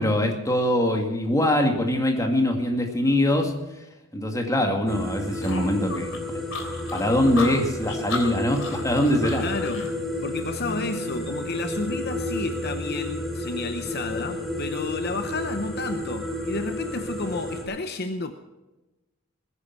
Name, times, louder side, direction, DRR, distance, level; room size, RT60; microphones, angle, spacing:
voice 1, 0.0-3.5 4.1-6.4 6.9-9.4, left 1 dB, 15° left, 2.2 m, -23 dB
sound 1, 4.9-17.6, left 1 dB, ahead, 3.4 m, -32 dB
sound 2, 5.4-9.9, left 4 dB, 80° left, 3.3 m, -35 dB
voice 2, 9.4-9.9 10.2-18.3, left 3 dB, 50° left, 0.8 m, -31 dB
20.5 x 10.0 x 6.0 m
head